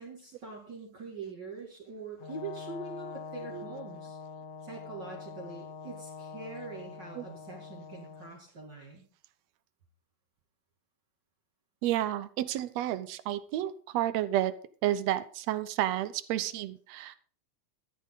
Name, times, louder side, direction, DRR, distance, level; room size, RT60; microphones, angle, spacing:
voice 1, 0.0-4.2 4.6-9.0, right 3 dB, 35° right, -2 dB, 2.9 m, -43 dB
Brass instrument, 2.2-8.3, left 5 dB, 75° left, 2.8 m, -44 dB
voice 2, 11.8-14.5 14.8-17.2, right 13 dB, 70° right, 14 dB, 1.8 m, -31 dB
13.5 x 11.5 x 4.0 m, 0.42 s
omnidirectional pair, 3.6 m